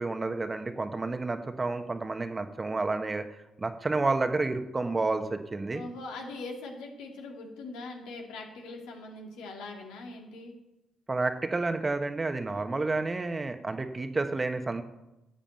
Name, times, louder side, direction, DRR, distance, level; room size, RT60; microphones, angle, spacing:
voice 1, 0.0-3.3 3.6-5.8 11.1-14.8, right 3 dB, 25° right, 7 dB, 1.3 m, -30 dB
voice 2, 5.7-10.5, left 2 dB, 85° left, 1 dB, 2.5 m, -41 dB
11.0 x 7.1 x 9.1 m, 0.93 s
supercardioid pair, 60°, 0 cm